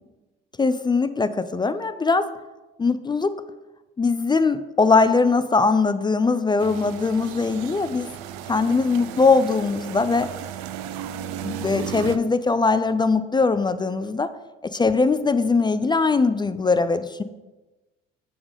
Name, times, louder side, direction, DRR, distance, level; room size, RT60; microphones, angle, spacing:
voice 1, 0.6-2.3 2.8-3.3 4.0-8.1 8.5-10.3 11.4-14.3 14.7-17.2, left 4 dB, 15° left, 13 dB, 0.3 m, -21 dB
sound 1, 6.6-12.2, right 10 dB, 75° right, 0.5 m, -35 dB
7.1 x 3.7 x 5.0 m, 1.1 s
hypercardioid pair, 60°, 30 cm